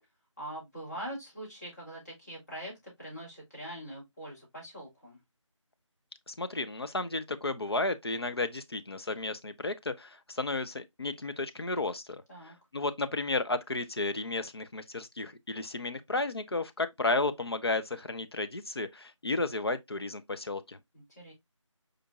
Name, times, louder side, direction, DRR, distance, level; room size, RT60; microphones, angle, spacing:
voice 1, 0.4-5.2 12.3-12.5 20.9-21.3, right 1 dB, 35° left, 2.9 m, -43 dB
voice 2, 6.3-20.8, left 2 dB, 50° left, 0.5 m, -33 dB
5.0 x 4.2 x 2.3 m
figure-of-eight pair, 170°, 17 cm